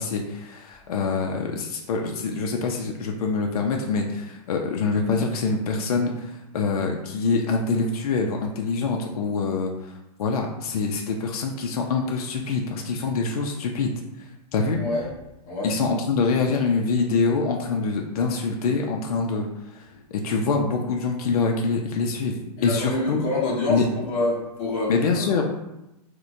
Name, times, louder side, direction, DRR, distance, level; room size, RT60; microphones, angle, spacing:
voice 1, 0.0-13.9 14.5-14.8 15.6-19.9 20.1-23.2 23.7-23.9 24.9-25.4, left 4 dB, 65° left, 2 dB, 0.5 m, -25 dB
voice 2, 14.6-15.0 15.5-15.7 22.6-25.3, left 2 dB, 40° left, -6 dB, 1.2 m, -27 dB
4.3 x 2.1 x 2.5 m, 0.92 s
hypercardioid pair, 160°, 21 cm